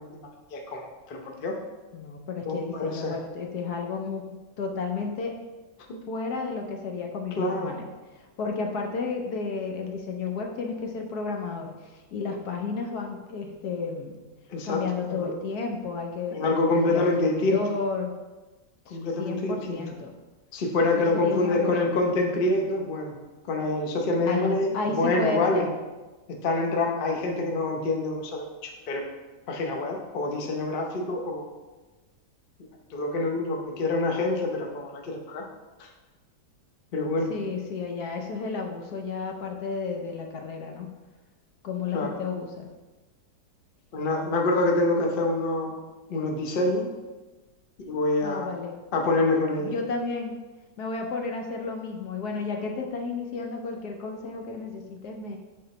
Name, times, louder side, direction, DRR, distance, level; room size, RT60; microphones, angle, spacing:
voice 1, 0.0-1.6 2.4-3.1 5.9-6.0 7.4-7.7 14.5-14.8 15.1-15.4 16.3-17.6 18.9-19.8 20.5-23.1 23.5-25.7 26.4-29.0 29.5-31.5 32.9-35.4 35.8-35.9 36.9-37.3 41.9-42.1 43.9-45.7 46.1-46.9 47.8-48.5 48.9-49.7, left 2 dB, 45° left, 1 dB, 0.8 m, -26 dB
voice 2, 1.9-5.3 6.1-7.9 8.1-14.2 14.6-18.1 18.9-20.1 21.0-21.9 24.3-25.8 37.3-40.9 41.6-42.7 48.2-48.8 49.6-50.3 50.8-55.4, left 4 dB, 65° left, 3 dB, 1.2 m, -32 dB
7.5 x 3.9 x 4.2 m, 1.2 s
omnidirectional pair, 1.9 m